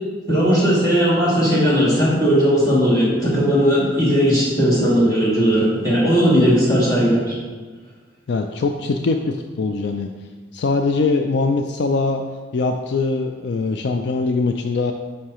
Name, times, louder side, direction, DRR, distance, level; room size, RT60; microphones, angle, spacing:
voice 1, 0.3-7.3, equal, 20° left, -8 dB, 2.4 m, -17 dB
voice 2, 8.3-10.1 10.5-12.2 12.5-14.9, left 3 dB, 60° left, 5 dB, 0.4 m, -22 dB
9.5 x 5.6 x 3.0 m, 1.4 s
head